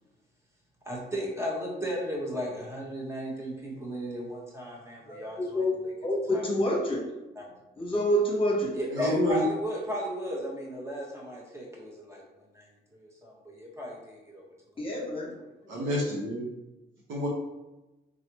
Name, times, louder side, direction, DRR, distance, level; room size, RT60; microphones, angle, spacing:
voice 1, 0.8-5.9 6.3-6.5 8.7-14.4, equal, 15° right, -3 dB, 1.4 m, -35 dB
voice 2, 5.1-5.8 6.0-7.0 7.8-8.7 14.8-15.3 15.8-15.9, equal, 25° left, -2 dB, 1.4 m, -27 dB
voice 3, 8.9-9.4 15.7-16.5 17.1-17.3, left 1 dB, 75° right, -5 dB, 1.3 m, -28 dB
3.9 x 3.1 x 3.0 m, 1.0 s
cardioid pair, 90°, 20 cm